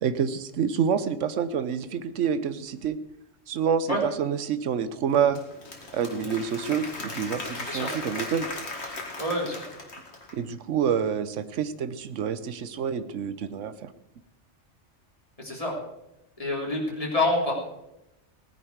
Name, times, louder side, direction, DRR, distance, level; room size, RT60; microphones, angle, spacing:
voice 1, 0.0-3.0 3.5-5.4 5.9-8.5 10.3-13.9, right 7 dB, 80° right, 13 dB, 1.2 m, -27 dB
Applause / Crowd, 5.1-10.5, left 2 dB, 65° left, 2.4 m, -38 dB
voice 2, 9.2-9.6 15.4-15.7 16.4-17.5, left 2 dB, 30° left, -2 dB, 3.4 m, -27 dB
18.0 x 10.0 x 4.6 m, 0.87 s
omnidirectional pair, 1.2 m